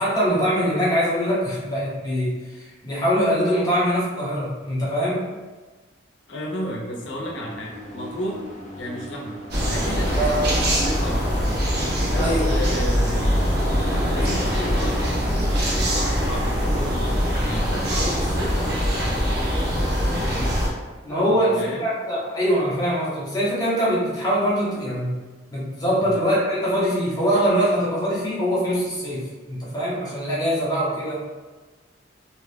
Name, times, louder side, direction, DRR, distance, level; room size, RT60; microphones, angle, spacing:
voice 1, 0.0-5.3 10.1-10.4 12.1-12.5 21.0-25.1 25.5-31.2, equal, 20° left, -8 dB, 0.9 m, -23 dB
voice 2, 6.3-8.4 8.8-9.4 9.7-11.3 12.0-13.5 14.1-15.0 15.7-19.3 21.6-21.9 26.0-26.1, equal, 75° left, -2 dB, 0.7 m, -32 dB
sound 1, 6.5-17.6, left 1 dB, 40° left, 0.5 m, -40 dB
sound 2, 9.5-20.7, equal, 55° right, 0.7 m, -22 dB
2.7 x 2.4 x 3.3 m, 1.3 s
head